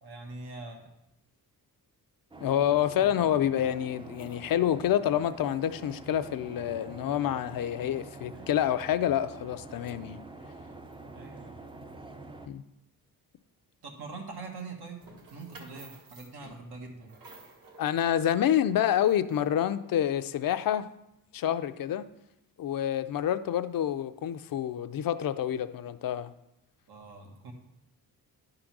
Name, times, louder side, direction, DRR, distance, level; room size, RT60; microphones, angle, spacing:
voice 1, 0.0-0.9 8.3-8.5 11.1-11.6 13.8-17.1 26.9-27.5, right 3 dB, 80° right, 2 dB, 1.7 m, -43 dB
sound 1, 2.3-12.5, right 3 dB, 15° right, 0.4 m, -46 dB
voice 2, 2.4-10.2 12.5-12.6 17.8-20.9 21.3-22.1 22.6-26.3, left 10 dB, 65° left, 12 dB, 0.5 m, -28 dB
sound 2, 15.0-19.7, right 3 dB, 65° right, 1.5 m, -53 dB
10.5 x 3.8 x 6.0 m, 0.86 s
wide cardioid pair, 150°, 37 cm